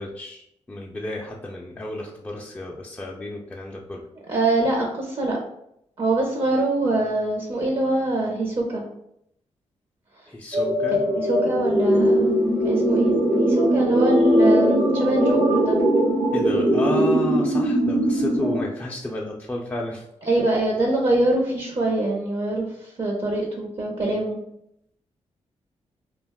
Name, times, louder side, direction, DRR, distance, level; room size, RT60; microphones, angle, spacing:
voice 1, 0.0-4.0 10.3-11.0 16.3-20.0, left 1 dB, 15° left, -2 dB, 0.4 m, -32 dB
voice 2, 4.3-5.4 6.0-8.8 10.9-12.2 12.6-13.1 13.4-15.8 20.3-24.4, right 2 dB, 40° right, -1 dB, 0.6 m, -24 dB
sound 1, 10.5-18.6, right 1 dB, 70° right, 1.2 m, -20 dB
2.5 x 2.2 x 3.5 m, 0.77 s
cardioid pair, 65°, 12 cm